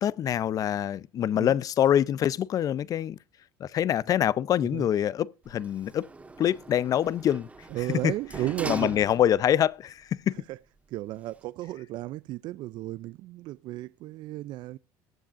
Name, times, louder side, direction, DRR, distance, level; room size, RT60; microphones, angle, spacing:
voice 1, 0.0-3.2 3.6-6.1 6.4-7.5 8.0-8.1 8.7-10.4, left 10 dB, 45° left, 0.5 m, -25 dB
Sliding door, 5.4-9.6 10.0-10.1, right 3 dB, 15° right, 1.6 m, -41 dB
voice 2, 7.7-8.9 10.5-10.6 10.9-14.8, right 16 dB, 60° right, 0.4 m, -34 dB
19.0 x 7.4 x 2.5 m
supercardioid pair, 100°, 9 cm